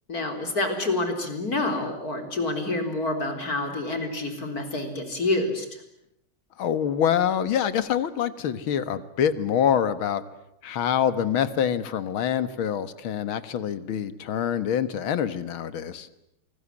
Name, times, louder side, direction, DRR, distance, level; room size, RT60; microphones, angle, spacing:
voice 1, 0.1-5.7, left 2 dB, 45° left, 6 dB, 4.4 m, -28 dB
voice 2, 6.6-10.2 10.6-16.1, left 9 dB, 80° left, 14 dB, 2.2 m, -25 dB
28.0 x 20.5 x 9.9 m, 0.79 s
omnidirectional pair, 2.3 m